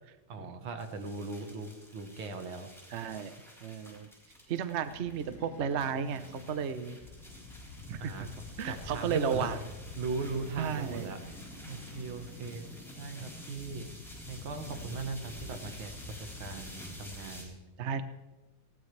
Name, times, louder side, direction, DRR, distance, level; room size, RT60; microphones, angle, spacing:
voice 1, 0.3-2.7 8.0-8.2 8.6-9.5 10.0-11.4 11.7-12.7 13.0-13.9 14.3-17.6, right 4 dB, 80° right, 6 dB, 2.2 m, -39 dB
sound 1, 0.8-17.5, left 2 dB, ahead, 3.8 m, -47 dB
voice 2, 2.9-3.4 3.6-4.1 4.5-7.0 7.9-8.3 8.6-9.6 10.6-11.2 17.8-18.0, right 7 dB, 55° right, 11 dB, 0.7 m, -33 dB
Breathing, 4.7-8.4 10.2-13.3, left 2 dB, 70° left, 4.3 m, -52 dB
19.5 x 16.5 x 3.3 m, 1.1 s
omnidirectional pair, 2.2 m